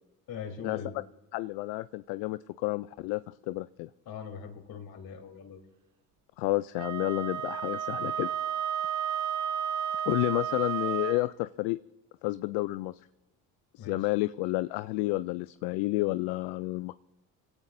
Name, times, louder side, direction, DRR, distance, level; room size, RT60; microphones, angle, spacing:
voice 1, 0.3-0.9 4.1-5.7 13.8-14.1, left 6 dB, 60° left, 2 dB, 3.6 m, -41 dB
voice 2, 1.3-3.9 6.4-8.3 10.1-11.8 12.2-13.0 13.7-17.0, left 19 dB, 75° left, 15 dB, 0.5 m, -30 dB
Wind instrument woodwind instrument, 6.7-11.3, right 9 dB, 45° right, 1.0 m, -32 dB
24.5 x 17.0 x 2.6 m, 0.95 s
supercardioid pair, 75°, 41 cm